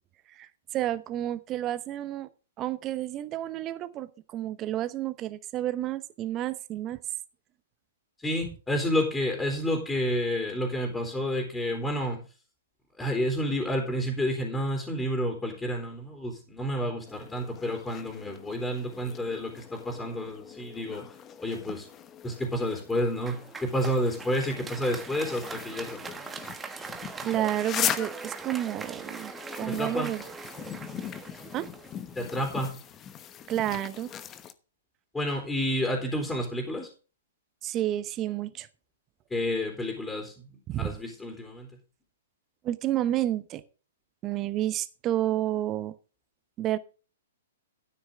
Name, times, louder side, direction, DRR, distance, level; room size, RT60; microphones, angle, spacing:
voice 1, 0.3-2.3 2.6-7.0 27.2-29.3 29.6-30.2 31.5-31.7 33.5-34.1 37.6-38.7 40.7-40.9 42.6-43.6 44.2-45.9 46.6-46.8, right 13 dB, 30° right, 14 dB, 0.9 m, -30 dB
voice 2, 8.2-12.2 13.0-21.9 22.2-26.2 29.7-30.1 32.1-32.7 35.1-36.9 39.3-41.7, equal, 10° left, 1 dB, 3.3 m, -30 dB
sound 1, 17.1-34.5, left 9 dB, 25° left, 1.0 m, -40 dB
Applause, 23.3-32.6, right 5 dB, 15° right, 1.3 m, -42 dB
13.0 x 9.7 x 3.6 m, 0.35 s
hypercardioid pair, 120°, 0 cm